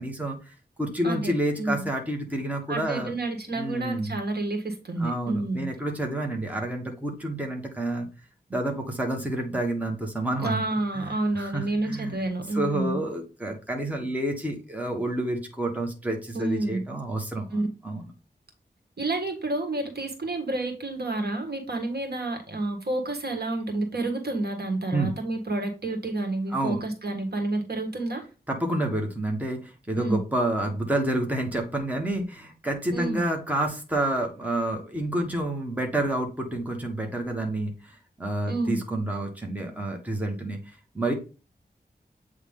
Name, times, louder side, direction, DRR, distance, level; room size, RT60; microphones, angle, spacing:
voice 1, 0.0-3.1 3.5-4.2 5.0-8.1 8.5-10.6 10.9-12.2 12.5-18.1 24.9-25.1 26.5-26.8 28.5-40.6 40.9-41.1, right 1 dB, 10° right, 1 dB, 1.4 m, -29 dB
voice 2, 2.7-5.7 10.4-13.0 16.3-16.8 17.5-17.7 19.0-28.2 30.0-30.2 32.9-33.2 38.4-38.8, right 2 dB, 65° right, 4 dB, 1.6 m, -29 dB
8.0 x 3.3 x 3.7 m, 0.33 s
wide cardioid pair, 95°, 18 cm